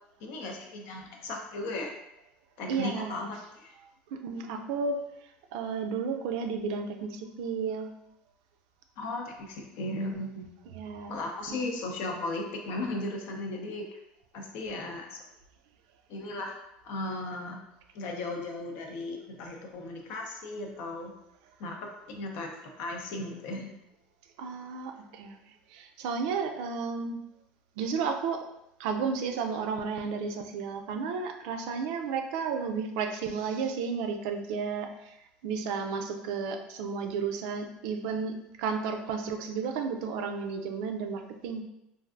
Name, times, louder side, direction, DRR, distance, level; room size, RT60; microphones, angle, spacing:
voice 1, 0.2-1.9 2.6-3.7 9.0-10.5 11.1-14.0 14.3-15.2 16.1-17.6 17.9-21.1 21.6-21.8 22.1-23.7, left 2 dB, 70° left, 2 dB, 0.6 m, -36 dB
voice 2, 2.7-3.3 4.1-5.0 5.5-7.9 10.7-11.2 11.5-11.6 24.4-25.4 25.7-27.2 27.8-28.4 28.8-35.1 35.4-41.6, right 5 dB, 80° right, 5 dB, 0.4 m, -32 dB
3.2 x 2.5 x 2.4 m, 0.86 s
supercardioid pair, 95°, 4 cm